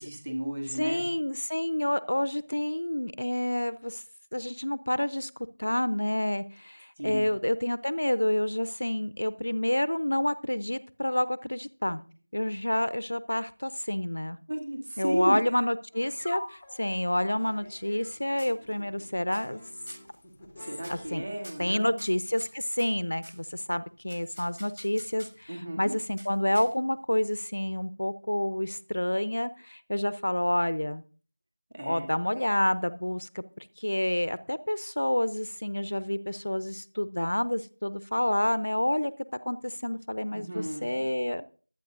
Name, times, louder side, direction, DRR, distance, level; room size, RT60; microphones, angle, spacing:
voice 1, 0.0-1.0 7.0-7.3 14.5-15.4 20.6-22.0 25.5-25.9 31.7-32.1 40.3-41.0, right 1 dB, 25° right, 2 dB, 2.4 m, -33 dB
voice 2, 0.7-4.0 4.3-5.3 5.6-12.0 12.3-14.4 15.0-19.6 20.9-21.2 21.6-31.0 31.8-39.1 39.5-41.5, left 1 dB, 55° left, 14 dB, 0.7 m, -29 dB
sound 1, 15.9-21.3, left 1 dB, 5° left, 1.0 m, -45 dB
sound 2, 17.2-18.1 18.4-19.0 19.3-19.6 19.9-20.2 20.8-21.1 21.4-23.4 24.1-25.5 26.2-27.0, equal, 75° right, 6.9 m, -48 dB
23.0 x 9.1 x 2.6 m, 0.40 s
figure-of-eight pair, 175°, 0 cm